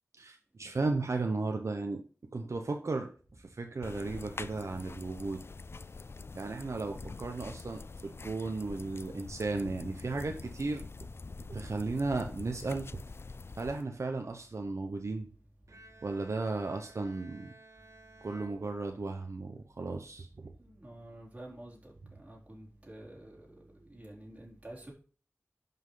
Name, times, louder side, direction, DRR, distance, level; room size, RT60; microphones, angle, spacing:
voice 1, 0.2-2.0 2.3-5.4 6.3-10.8 11.5-12.9 13.6-15.3 16.0-17.5 18.2-20.5, right 3 dB, 70° right, 1.0 m, -35 dB
sound 1, 3.8-13.8, left 4 dB, 55° left, 0.4 m, -45 dB
Bowed string instrument, 15.7-19.4, right 2 dB, 90° right, 1.5 m, -56 dB
voice 2, 20.6-24.9, right 1 dB, 25° right, 3.8 m, -49 dB
11.0 x 5.6 x 4.0 m
wide cardioid pair, 75°, 5 cm